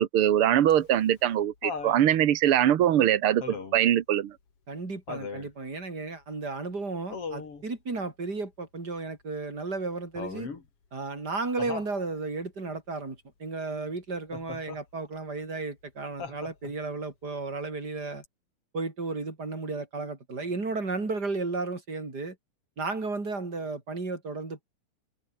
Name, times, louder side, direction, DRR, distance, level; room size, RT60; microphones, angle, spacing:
voice 1, 0.0-4.3, right 11 dB, 85° right, 1.2 m, -22 dB
Laughter, 0.7-2.0 3.4-3.9 5.1-5.5 7.1-7.6 10.2-10.7 11.6-12.0 14.3-14.8 16.2-16.8 18.2-18.3, left 5 dB, 40° left, 4.2 m, -38 dB
voice 2, 4.7-10.5 10.9-18.2 18.7-22.4 22.8-24.6, right 3 dB, 25° right, 4.9 m, -34 dB
omnidirectional pair, 4.3 m